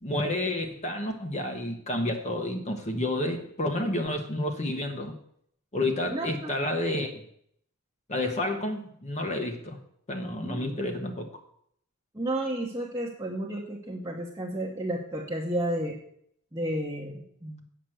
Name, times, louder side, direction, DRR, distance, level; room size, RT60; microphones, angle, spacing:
voice 1, 0.0-5.1 5.7-7.1 8.1-9.8 10.1-11.3, left 1 dB, 30° left, 4 dB, 1.1 m, -30 dB
voice 2, 6.1-6.5 10.4-10.8 12.1-16.0 16.5-17.6, right 1 dB, 15° right, -3 dB, 1.0 m, -32 dB
8.2 x 5.9 x 7.7 m, 0.68 s
head